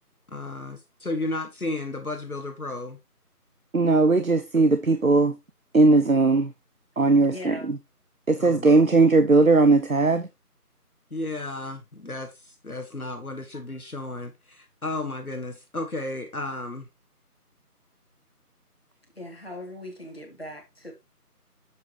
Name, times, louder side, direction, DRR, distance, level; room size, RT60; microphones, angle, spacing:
voice 1, 0.3-3.0 8.4-8.7 11.1-16.9, left 2 dB, 65° left, 1.5 m, -33 dB
voice 2, 3.7-5.3 5.7-6.5 7.0-7.8 8.3-10.3, right 3 dB, 60° right, 0.8 m, -19 dB
voice 3, 7.2-7.7 19.2-20.9, left 1 dB, 40° left, 2.2 m, -40 dB
7.5 x 7.2 x 2.9 m
figure-of-eight pair, 175°, 47 cm